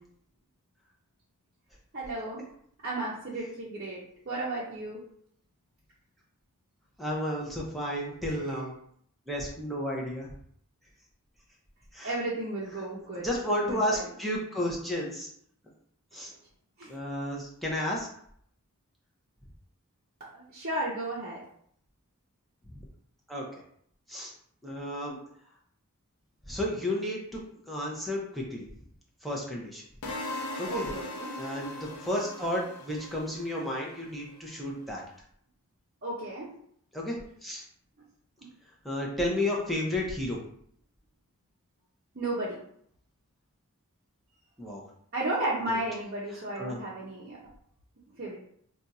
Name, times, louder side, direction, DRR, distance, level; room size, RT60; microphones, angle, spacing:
voice 1, 1.9-2.4 2.8-5.0 8.3-8.4 12.0-13.3 13.6-14.0 16.8-16.9 20.2-21.4 30.7-31.3 36.0-36.5 42.1-42.6 45.1-47.4 48.2-48.4, right 1 dB, 45° right, -7 dB, 0.6 m, -33 dB
voice 2, 7.0-8.8 9.3-10.3 11.9-12.1 13.2-15.3 16.1-16.3 16.9-18.1 22.8-22.9 23.3-23.6 24.1-24.3 24.6-25.2 26.5-27.4 27.7-28.7 29.2-29.8 30.6-30.9 31.4-35.0 36.9-37.2 37.4-37.6 38.8-40.4 44.6-44.8 45.7-45.8 46.3-46.8, left 1 dB, ahead, -4 dB, 0.6 m, -32 dB
sound 1, 30.0-34.1, left 2 dB, 85° left, 0.5 m, -39 dB
2.5 x 2.3 x 4.0 m, 0.66 s
head